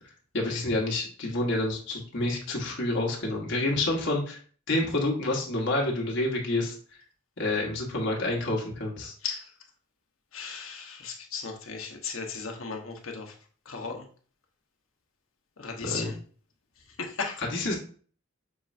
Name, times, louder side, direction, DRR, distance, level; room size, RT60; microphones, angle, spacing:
voice 1, 0.3-4.4 4.7-6.7 7.4-9.1 15.8-16.2 17.4-17.8, left 2 dB, 60° left, 0 dB, 1.3 m, -28 dB
voice 2, 10.3-13.3 13.7-14.0 15.6-16.1 17.0-17.4, left 5 dB, 75° left, 2 dB, 1.0 m, -36 dB
6.0 x 3.2 x 2.6 m, 0.42 s
head